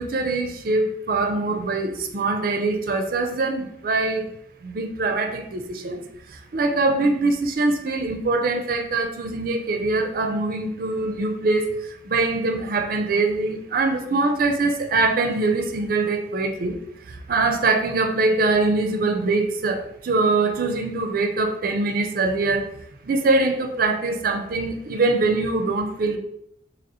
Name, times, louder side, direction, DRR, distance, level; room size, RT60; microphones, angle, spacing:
voice 1, 0.0-4.3 4.6-6.0 6.3-16.8 17.1-22.7 23.0-26.2, right 3 dB, 50° right, 5 dB, 0.5 m, -23 dB
2.9 x 2.8 x 4.1 m, 0.77 s
head